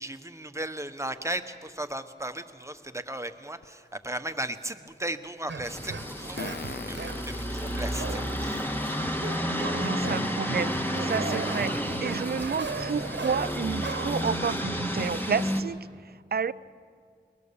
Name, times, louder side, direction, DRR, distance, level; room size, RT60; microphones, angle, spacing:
voice 1, 0.0-6.5 6.9-8.6, right 1 dB, 15° right, 8 dB, 1.2 m, -36 dB
Fart, 3.6-3.7 6.4-8.7 9.3-9.4 10.7-10.8 11.1-11.2 11.7-11.9, left 5 dB, 60° left, 0.6 m, -41 dB
sound 1, 5.5-7.3 8.0-8.6 9.0-15.1, right 4 dB, 80° right, 1.3 m, -37 dB
sound 2, 5.6-15.6, equal, 10° left, 1.9 m, -31 dB
voice 2, 9.6-15.9 16.3-16.5, right 6 dB, 60° right, 18 dB, 0.5 m, -30 dB
22.5 x 19.5 x 7.0 m, 2.2 s
cardioid pair, 45°, 18 cm